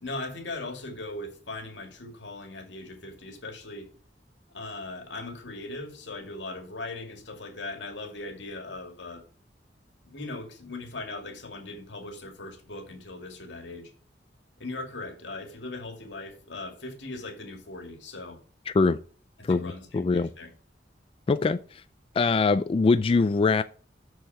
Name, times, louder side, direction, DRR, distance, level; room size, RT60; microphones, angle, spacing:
voice 1, 0.0-3.9 4.5-9.2 10.0-13.9 14.6-18.4 19.4-20.5, left 2 dB, 85° left, 2.2 m, -39 dB
voice 2, 18.7-19.0 19.4-20.3 21.3-21.8 22.2-23.6, left 4 dB, 30° left, 0.3 m, -23 dB
6.6 x 6.4 x 5.7 m
head